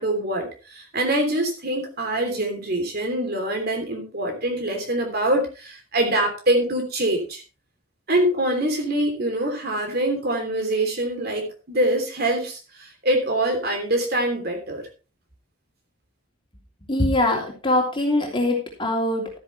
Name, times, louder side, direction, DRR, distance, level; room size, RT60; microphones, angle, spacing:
voice 1, 0.0-7.4 8.1-14.8, right 1 dB, 45° right, 4 dB, 3.2 m, -24 dB
voice 2, 16.9-19.4, left 1 dB, 25° left, 0 dB, 3.0 m, -22 dB
13.0 x 10.0 x 3.3 m, 0.34 s
head